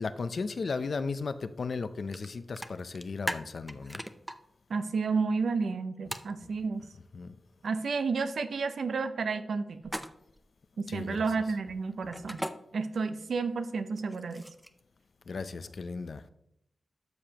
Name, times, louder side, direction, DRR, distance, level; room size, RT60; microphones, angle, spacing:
voice 1, 0.0-4.0 7.1-7.3 10.9-11.2 12.0-12.1 15.3-16.2, left 4 dB, 60° left, 12 dB, 0.5 m, -35 dB
sound 1, 2.1-2.3 2.6-4.4 6.1-6.3 9.8-10.4 12.1-12.5 13.9-14.8, equal, 5° right, 0.5 m, -37 dB
voice 2, 4.7-6.9 7.6-9.9 10.8-12.4 12.7-14.4, right 4 dB, 90° right, 10 dB, 0.7 m, -31 dB
12.5 x 6.9 x 2.9 m, 0.79 s
wide cardioid pair, 120°, 0 cm